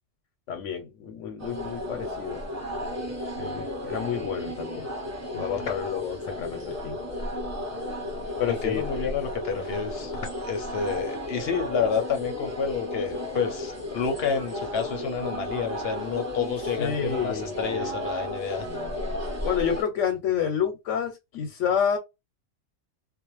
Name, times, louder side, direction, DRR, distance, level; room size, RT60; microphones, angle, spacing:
voice 1, 0.5-2.4 3.4-4.9 5.3-7.0 8.4-8.8 16.8-17.9 19.4-22.0, left 8 dB, 90° left, 0.9 m, -29 dB
sound 1, 1.4-19.8, left 1 dB, 15° right, 0.9 m, -34 dB
voice 2, 8.5-18.7, left 6 dB, 65° left, 0.7 m, -29 dB
2.4 x 2.0 x 3.0 m
omnidirectional pair, 1.2 m